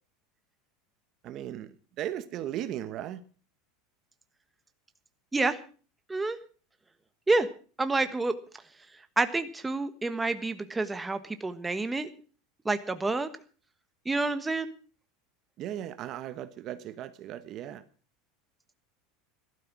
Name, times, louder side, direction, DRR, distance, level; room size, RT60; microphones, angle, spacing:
voice 1, 1.2-3.2 15.6-17.8, right 11 dB, 45° right, 1.2 m, -37 dB
voice 2, 7.8-8.3 9.2-12.1 12.6-13.3 14.0-14.7, right 3 dB, 10° right, 1.3 m, -28 dB
14.5 x 13.0 x 6.1 m
supercardioid pair, 120°, 0 cm